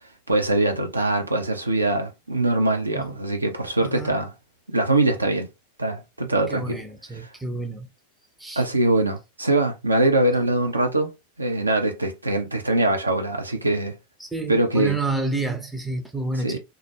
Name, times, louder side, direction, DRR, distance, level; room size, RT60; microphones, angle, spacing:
voice 1, 0.3-4.3 4.7-5.5 5.8-6.8 7.2-7.3 8.6-11.1 11.4-14.0 14.5-15.0 16.4-16.6, right 2 dB, 80° right, 0.5 m, -22 dB
voice 2, 3.8-4.2 6.5-7.9 8.4-8.6 14.2-16.6, right 3 dB, 5° right, 0.5 m, -29 dB
2.2 x 2.0 x 2.9 m
figure-of-eight pair, 90°, 0 cm